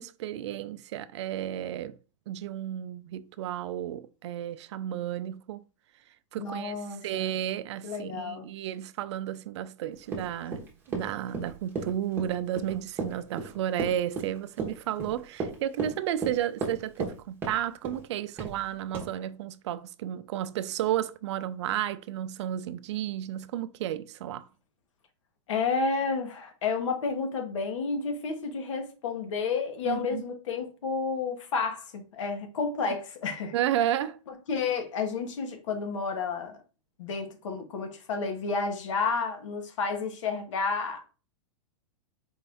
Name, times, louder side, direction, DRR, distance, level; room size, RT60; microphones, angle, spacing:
voice 1, 0.0-2.0 2.3-5.6 6.3-6.8 7.0-24.4 29.8-30.2 33.5-34.2, right 11 dB, 60° right, 0.4 m, -32 dB
voice 2, 6.4-7.3 7.8-8.5 25.5-33.5 34.5-36.6 37.0-41.0, left 4 dB, 70° left, 1.1 m, -31 dB
Run, 10.1-17.2 17.4-18.0 18.4-18.6 18.9-19.1, right 3 dB, 15° right, 1.0 m, -35 dB
4.5 x 2.5 x 3.4 m
supercardioid pair, 155°, 16 cm